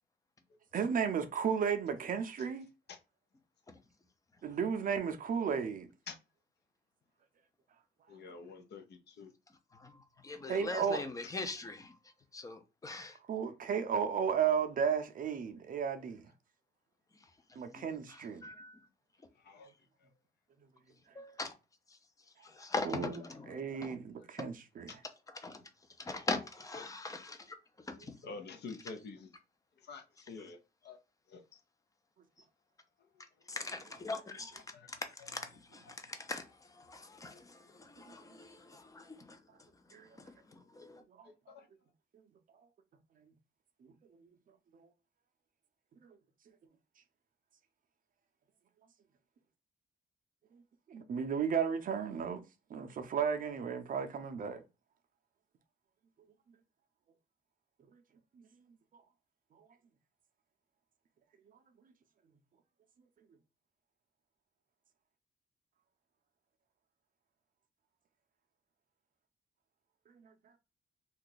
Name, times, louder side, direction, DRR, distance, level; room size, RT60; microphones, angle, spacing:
voice 1, 0.7-2.7 4.4-5.9 10.5-11.0 13.3-16.3 17.6-18.4 22.8-23.2 23.5-25.0 39.9-40.1 41.2-41.3 43.8-43.9 44.2-44.3 44.7-44.9 50.9-52.4 52.7-54.6 70.2-70.3, right 7 dB, 50° right, 0.5 m, -34 dB
voice 2, 8.1-9.3 19.4-19.7 24.9-25.0 26.7-26.9 28.2-29.3 29.8-31.0 31.3-31.6 34.7-34.9 41.5-41.7, left 4 dB, 65° left, 0.6 m, -48 dB
voice 3, 9.7-11.9 12.3-13.2 17.5-17.8 18.1-18.8 21.2-21.5 21.9-22.0 22.4-24.0 25.3-25.6 26.0-27.6 27.9-28.2 33.5-34.6 35.2-39.7 40.3-41.0, left 3 dB, 20° left, 0.5 m, -42 dB
2.7 x 2.3 x 3.8 m
wide cardioid pair, 155°, 19 cm